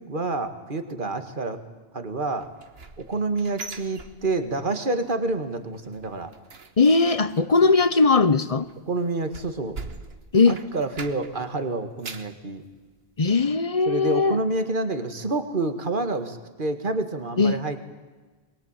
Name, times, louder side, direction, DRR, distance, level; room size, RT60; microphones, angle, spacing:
voice 1, 0.1-1.6 1.9-2.5 3.1-6.3 8.9-9.8 10.5-12.6 13.9-17.8, right 2 dB, 50° right, 9 dB, 2.1 m, -28 dB
sound 1, 2.4-4.7 5.0-5.4 5.7-11.5 11.8-12.4 12.9-13.0 13.4-13.5, right 4 dB, 70° right, 1.6 m, -42 dB
voice 2, 6.8-8.7 10.3-10.6 13.2-14.4 17.4-17.6, left 4 dB, 35° left, 15 dB, 0.9 m, -19 dB
23.0 x 21.5 x 9.0 m, 1.3 s
omnidirectional pair, 1.1 m